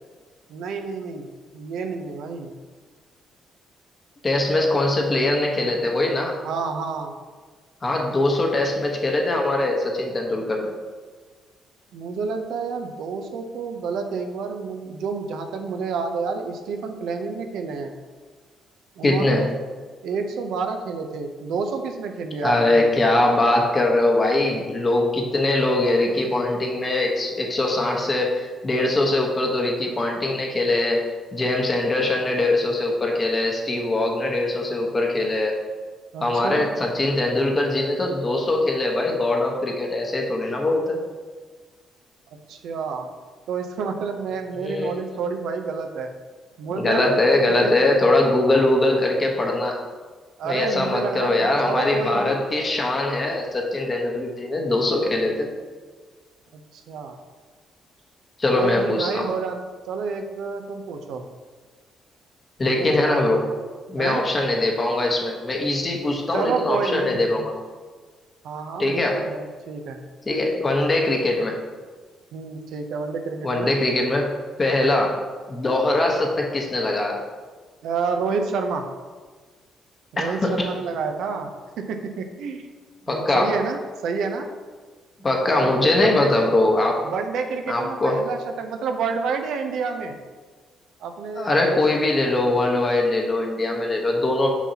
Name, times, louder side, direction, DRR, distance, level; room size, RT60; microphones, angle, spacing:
voice 1, 0.5-1.3 1.5-2.5 6.4-7.1 11.9-17.9 19.0-19.5 20.0-22.9 36.1-36.7 42.5-43.1 43.5-46.1 46.6-47.7 50.4-52.4 56.5-57.2 58.5-59.6 59.9-61.2 62.6-63.2 63.9-64.2 66.3-67.5 68.4-70.0 72.3-73.7 77.8-78.8 80.1-81.5 81.8-82.7 83.1-84.5 85.6-86.5 87.0-90.1 91.0-91.8, right 5 dB, 80° right, 5 dB, 0.6 m, -29 dB
voice 2, 4.2-6.3 7.8-10.7 19.0-19.5 22.4-31.0 31.3-35.5 36.2-41.0 44.6-45.0 46.7-49.8 50.4-55.5 58.4-59.3 62.6-63.4 63.9-67.5 68.8-69.3 70.3-71.5 73.4-75.2 75.5-77.2 80.2-80.7 83.1-83.6 85.2-87.0 87.7-88.2 91.4-94.5, left 2 dB, 30° left, 1 dB, 1.1 m, -22 dB
6.0 x 5.6 x 2.8 m, 1.4 s
cardioid pair, 90°, 0 cm